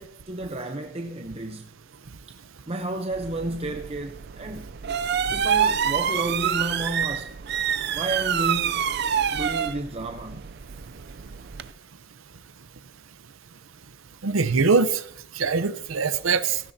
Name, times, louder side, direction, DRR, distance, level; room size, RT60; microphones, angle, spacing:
voice 1, 0.0-1.7 2.7-4.7 5.3-7.3 7.9-8.9 9.3-10.4, right 2 dB, 30° right, 0.7 m, -31 dB
sound 1, 3.1-11.7, right 8 dB, 55° right, 0.5 m, -27 dB
voice 2, 14.2-15.0 15.4-16.6, right 4 dB, 85° right, 0.7 m, -22 dB
16.0 x 14.5 x 2.8 m
head